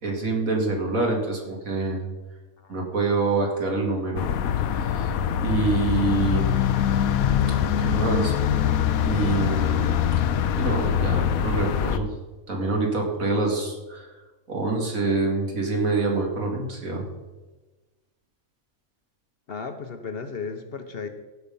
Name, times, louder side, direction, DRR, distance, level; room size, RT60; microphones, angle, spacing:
voice 1, 0.0-2.0 2.7-4.3 4.7-5.1 5.4-6.5 7.8-8.3 9.0-9.9 10.5-12.1 12.5-14.1 14.5-17.0, right 3 dB, 75° right, 0 dB, 2.7 m, -26 dB
sound 1, 4.2-12.0, left 9 dB, 85° left, 1.1 m, -23 dB
voice 2, 19.5-21.1, left 5 dB, 50° left, 7 dB, 0.9 m, -34 dB
15.5 x 5.8 x 5.3 m, 1.2 s
omnidirectional pair, 1.4 m